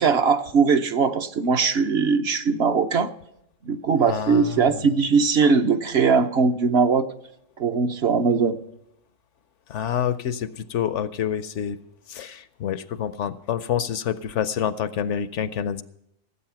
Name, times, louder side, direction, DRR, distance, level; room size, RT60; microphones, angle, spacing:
voice 1, 0.0-3.1 3.6-7.1 7.6-8.6, right 5 dB, 55° right, 7 dB, 1.0 m, -20 dB
voice 2, 4.1-4.9 9.7-11.8 12.1-15.8, left 9 dB, 70° left, 14 dB, 0.9 m, -27 dB
17.0 x 8.3 x 5.8 m, 0.78 s
omnidirectional pair, 1.4 m